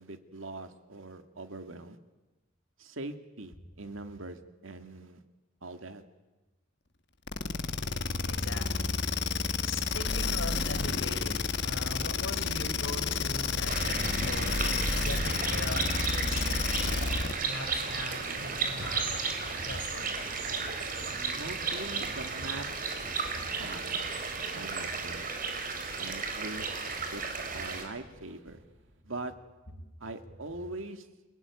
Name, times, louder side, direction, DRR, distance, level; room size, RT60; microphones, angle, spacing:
voice 1, 0.0-2.0 2.8-5.2 5.6-6.0 21.2-22.7 23.6-23.8 24.6-25.3 26.0-26.7 27.1-27.2 27.5-28.6 29.0-29.3 30.0-31.1, right 2 dB, 85° right, 8 dB, 2.2 m, -42 dB
sound 1, 7.3-17.4, left 4 dB, 55° left, 1.5 m, -30 dB
voice 2, 8.3-9.0 9.6-16.9 17.4-19.0 19.5-20.3, left 2 dB, 80° left, 6 dB, 4.7 m, -41 dB
sound 2, 10.0-29.0, right 1 dB, 65° right, 2.3 m, -48 dB
sound 3, 13.7-27.8, right 4 dB, 45° right, 4.4 m, -34 dB
29.0 x 20.5 x 9.6 m, 1.2 s
head